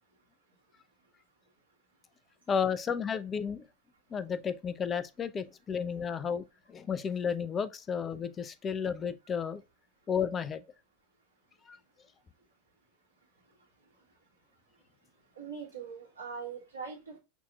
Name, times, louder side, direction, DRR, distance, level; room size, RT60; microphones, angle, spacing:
voice 1, 2.5-3.7 4.1-9.6 10.1-10.6 11.7-11.8, left 7 dB, 30° left, 0.5 m, -32 dB
voice 2, 15.3-17.2, right 6 dB, 85° right, 1.5 m, -41 dB
6.0 x 2.8 x 2.3 m
figure-of-eight pair, 85°, 0 cm